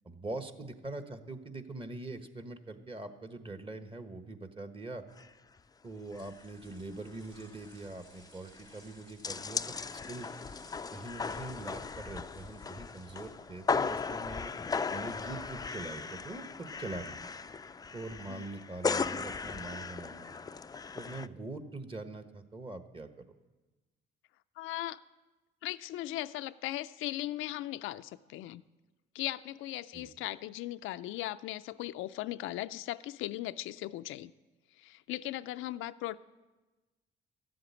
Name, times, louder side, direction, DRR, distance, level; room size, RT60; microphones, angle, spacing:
voice 1, 0.0-5.0 5.8-10.3 10.9-14.5 14.9-17.2 17.9-20.3 20.9-23.3 29.9-30.1, right 2 dB, 25° right, 8 dB, 1.2 m, -43 dB
sound 1, 5.2-5.3 5.6-5.7 6.1-6.4 6.7-6.8 7.1-21.3, left 5 dB, 20° left, 0.3 m, -37 dB
sound 2, 5.8-13.6, right 2 dB, 90° right, 6.5 m, -61 dB
voice 2, 24.6-25.0 25.6-28.6 29.1-34.3 34.8-36.2, left 15 dB, 90° left, 12 dB, 0.4 m, -38 dB
13.5 x 7.8 x 9.5 m, 1.2 s
cardioid pair, 90°, 20 cm